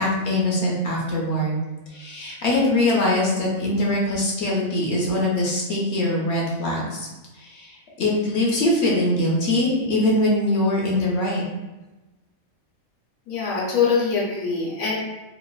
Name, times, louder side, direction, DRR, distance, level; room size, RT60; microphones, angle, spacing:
voice 1, 0.0-1.6 1.9-7.1 7.4-11.4, left 1 dB, 65° left, -2 dB, 0.8 m, -22 dB
voice 2, 13.3-15.0, left 5 dB, 80° left, -5 dB, 1.2 m, -23 dB
2.9 x 2.3 x 2.3 m, 1.1 s
omnidirectional pair, 1.4 m